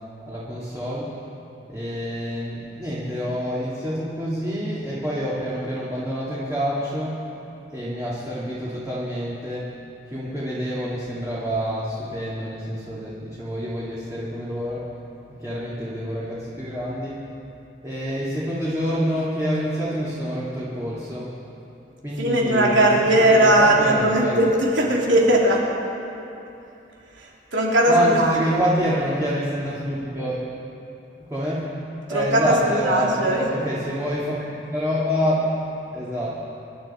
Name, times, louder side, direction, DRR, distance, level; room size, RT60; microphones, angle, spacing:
voice 1, 0.3-1.1 1.7-7.2 7.7-9.7 10.1-14.9 15.4-17.2 17.8-21.3 22.0-24.4 27.9-30.4 31.3-31.7 32.1-35.5 35.9-36.3, equal, 15° right, -8 dB, 2.4 m, -27 dB
voice 2, 22.2-25.6 27.2-28.6 32.1-33.4, right 1 dB, 85° right, -3 dB, 3.1 m, -19 dB
26.5 x 12.0 x 4.4 m, 2.9 s
head